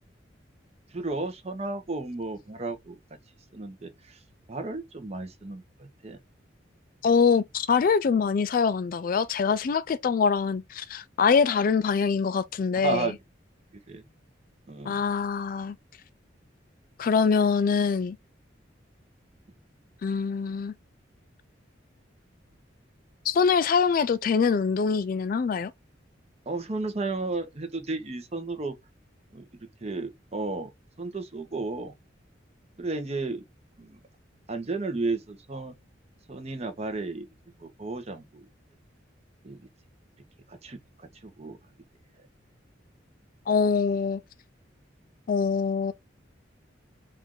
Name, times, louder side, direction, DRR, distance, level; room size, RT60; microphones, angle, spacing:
voice 1, 0.9-3.0 3.5-4.2 4.5-6.2 12.8-13.2 13.9-14.0 14.7-15.0 26.5-28.8 29.3-29.4 29.8-30.7 31.0-31.9 32.8-33.4 33.8-34.0 34.5-35.7 36.3-37.3 37.6-38.5 39.4-39.6 40.5-41.6, right 3 dB, 35° right, 0.8 m, -33 dB
voice 2, 7.0-13.1 14.9-15.8 17.0-18.2 20.0-20.7 23.3-25.7 43.5-44.2 45.3-45.9, left 5 dB, 45° left, 0.3 m, -24 dB
4.4 x 2.5 x 3.6 m
head